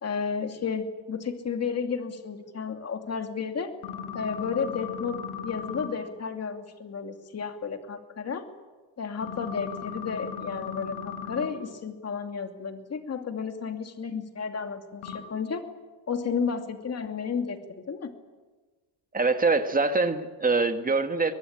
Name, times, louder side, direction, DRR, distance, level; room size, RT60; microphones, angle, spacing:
voice 1, 0.0-3.7 4.1-5.2 5.4-8.5 9.0-15.7 16.1-18.1, left 6 dB, 30° left, 6 dB, 2.7 m, -32 dB
sound 1, 3.8-5.9 9.2-11.5 15.0-15.2, left 7 dB, 85° left, 3.8 m, -37 dB
voice 2, 19.1-21.3, right 3 dB, 20° right, 8 dB, 1.7 m, -24 dB
23.5 x 20.0 x 8.9 m, 1.3 s
cardioid pair, 125°, 46 cm